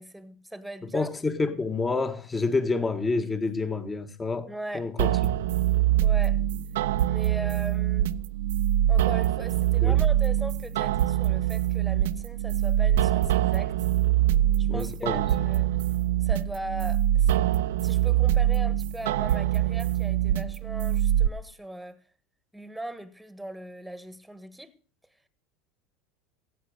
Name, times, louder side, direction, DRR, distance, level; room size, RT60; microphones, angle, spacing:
voice 1, 0.0-1.5 4.5-4.9 6.0-6.4 7.1-8.1 8.9-13.7 14.6-15.7 16.2-17.4 17.8-22.0 22.5-24.8, right 1 dB, ahead, 1.5 m, -39 dB
voice 2, 0.8-5.1 9.8-10.0 14.7-15.3, left 3 dB, 20° left, 1.6 m, -28 dB
sound 1, 5.0-21.3, right 12 dB, 80° right, 0.6 m, -24 dB
16.0 x 7.9 x 6.6 m
hypercardioid pair, 90°, 0 cm